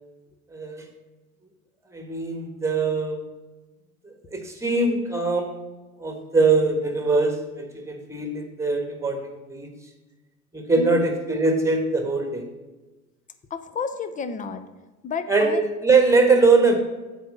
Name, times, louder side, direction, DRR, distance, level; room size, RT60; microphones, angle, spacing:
voice 1, 0.5-0.8 1.9-3.2 4.3-5.6 6.0-9.7 10.5-12.4 15.3-16.8, right 3 dB, 5° right, 4 dB, 1.6 m, -22 dB
voice 2, 13.5-14.6 15.0-15.6, left 5 dB, 20° left, 10 dB, 0.7 m, -31 dB
7.6 x 4.9 x 6.6 m, 1.2 s
hypercardioid pair, 90°, 44 cm